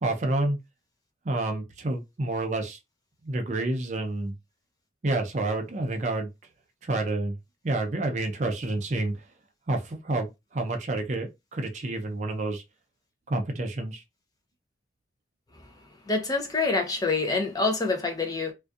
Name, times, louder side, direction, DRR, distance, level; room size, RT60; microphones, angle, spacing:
voice 1, 0.0-0.6 1.2-2.8 3.2-4.3 5.0-6.3 6.8-7.4 7.6-9.2 9.7-12.6 13.3-14.0, right 2 dB, 40° right, 0.5 m, -29 dB
voice 2, 16.1-18.5, left 3 dB, 20° left, 0.5 m, -26 dB
2.5 x 2.3 x 2.3 m
head